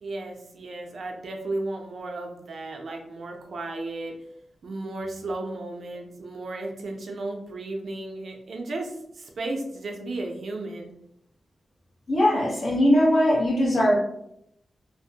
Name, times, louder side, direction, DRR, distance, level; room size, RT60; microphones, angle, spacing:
voice 1, 0.0-4.1 4.6-10.9, right 2 dB, 60° right, 2 dB, 0.4 m, -34 dB
voice 2, 12.1-14.0, equal, 50° left, -5 dB, 0.9 m, -20 dB
2.4 x 2.0 x 2.7 m, 0.76 s
wide cardioid pair, 155°, 0 cm